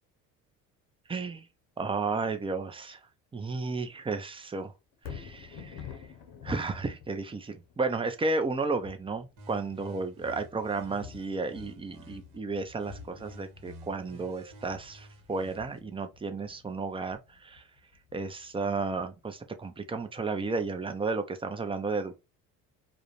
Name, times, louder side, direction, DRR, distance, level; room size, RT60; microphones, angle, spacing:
voice 1, 1.1-1.5 1.8-3.0 3.3-4.7 5.1-5.9 6.4-17.6 18.1-22.2, right 3 dB, 15° right, 0.5 m, -33 dB
Thunder, 4.9-19.1 19.6-19.7, left 7 dB, 60° left, 0.8 m, -49 dB
sound 1, 9.4-12.4 12.8-15.8, right 1 dB, 50° right, 1.2 m, -50 dB
2.4 x 2.0 x 2.9 m
hypercardioid pair, 70°, 42 cm